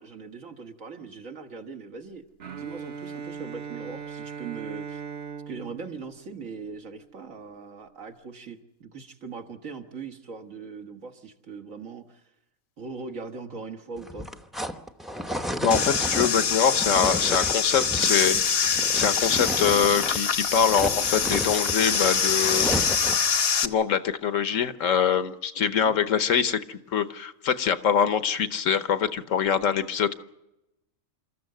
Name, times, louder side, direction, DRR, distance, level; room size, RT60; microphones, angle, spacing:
voice 1, 0.0-2.3 2.6-5.0 5.5-12.2 12.8-14.3 25.7-26.0, right 4 dB, 75° right, 5 dB, 2.0 m, -40 dB
Bowed string instrument, 2.4-7.2, right 6 dB, 50° right, 1.2 m, -39 dB
sound 1, 14.0-20.3 20.5-23.3, equal, ahead, 0.7 m, -33 dB
voice 2, 15.6-22.7 23.6-30.2, left 7 dB, 70° left, 12 dB, 1.3 m, -24 dB
sound 2, 15.7-23.7, left 6 dB, 50° left, 1.0 m, -25 dB
27.0 x 14.0 x 7.8 m, 0.89 s
omnidirectional pair, 1.4 m